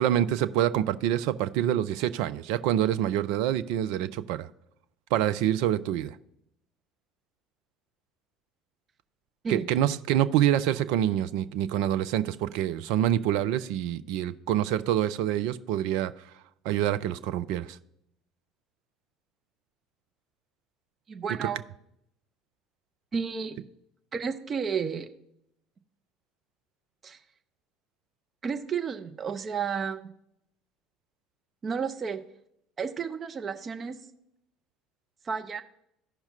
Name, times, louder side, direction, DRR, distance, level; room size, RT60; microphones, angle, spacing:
voice 1, 0.0-4.5 5.1-6.2 9.5-16.1 16.6-17.8 21.4-21.5, right 11 dB, 60° right, 0.3 m, -26 dB
voice 2, 21.1-21.6 23.1-23.6 24.1-25.1 27.0-27.2 28.4-30.0 31.6-32.2 32.8-34.0 35.2-35.6, right 6 dB, 30° right, 0.8 m, -31 dB
15.0 x 5.7 x 2.8 m
figure-of-eight pair, 60°, 0 cm